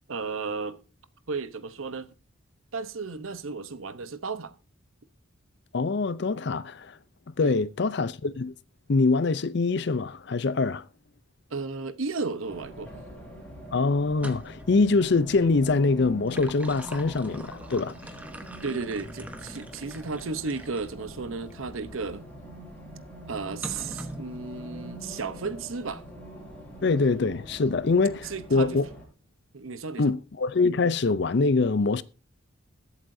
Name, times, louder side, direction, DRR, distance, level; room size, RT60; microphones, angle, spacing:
voice 1, 0.1-0.8 1.3-2.1 2.7-4.5 7.4-7.5 11.5-12.9 18.6-22.2 23.3-26.0 28.2-28.8 29.5-30.1, right 4 dB, 85° right, 0.9 m, -34 dB
voice 2, 5.7-7.0 7.3-8.5 8.9-10.9 13.7-17.9 26.8-28.8 30.0-32.0, left 3 dB, 55° left, 0.5 m, -24 dB
Race car auto racing, 12.5-29.0, equal, 10° left, 5.4 m, -44 dB
sound 1, 14.2-14.8 16.0-20.9 21.5-21.6 23.6-24.3, right 1 dB, 5° right, 1.0 m, -43 dB
21.0 x 8.1 x 2.7 m
head